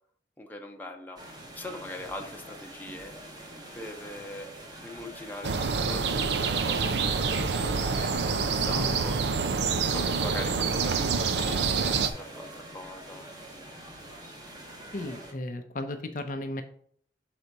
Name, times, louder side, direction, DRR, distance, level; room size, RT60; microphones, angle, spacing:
voice 1, 0.4-1.2 1.5-3.1 3.7-4.5 4.8-9.2 9.8-13.6, left 1 dB, 10° left, 2 dB, 0.7 m, -41 dB
sound 1, 1.2-15.3, right 1 dB, 25° right, 1.0 m, -45 dB
sound 2, 5.4-12.1, right 5 dB, 75° right, 0.5 m, -27 dB
voice 2, 14.9-16.6, left 1 dB, 50° left, 6 dB, 0.6 m, -35 dB
6.2 x 4.0 x 4.6 m, 0.62 s
head